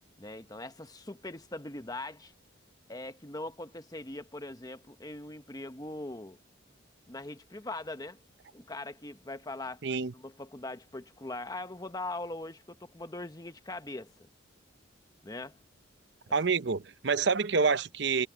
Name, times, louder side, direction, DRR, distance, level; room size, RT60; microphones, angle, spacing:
voice 1, 0.2-2.3 2.9-6.4 7.1-8.2 8.5-9.8 10.1-14.1 15.2-15.6, left 2 dB, 20° left, 1.0 m, -41 dB
voice 2, 9.8-10.1 16.3-18.3, right 5 dB, 60° right, 0.7 m, -27 dB
head